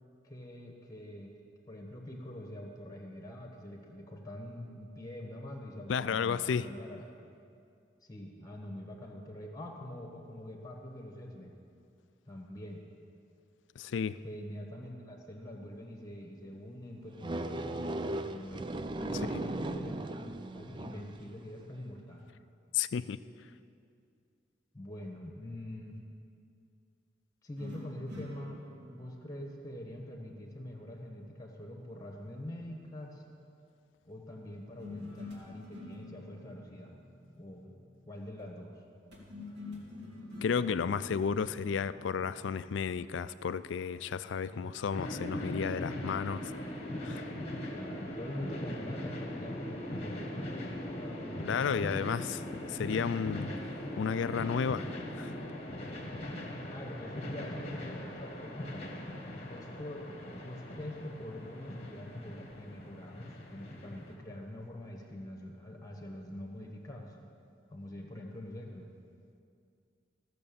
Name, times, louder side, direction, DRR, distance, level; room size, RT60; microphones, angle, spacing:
voice 1, 0.2-1.3 1.7-7.0 8.0-11.5 12.2-12.8 14.2-18.7 19.0-22.3 24.7-26.0 27.4-28.6 28.9-33.2 34.0-37.0 37.4-38.8 44.5-44.7 47.6-52.3 52.6-52.8 56.7-58.9 59.5-60.1 60.4-67.2 67.7-68.9, left 1 dB, 20° left, 2 dB, 1.5 m, -45 dB
voice 2, 5.9-6.7 13.8-14.2 22.7-23.2 40.4-46.4 47.0-47.3 51.4-53.5 54.0-54.9 55.2-55.3, left 6 dB, 75° left, 15 dB, 0.4 m, -32 dB
sound 1, 17.2-21.3, right 2 dB, 25° right, 0.4 m, -37 dB
sound 2, 27.6-31.0 34.8-38.2 39.1-42.9, left 2 dB, 65° right, 2.7 m, -48 dB
sound 3, 44.9-64.1, left 1 dB, 35° left, 1.2 m, -40 dB
15.0 x 6.7 x 7.0 m, 2.4 s
head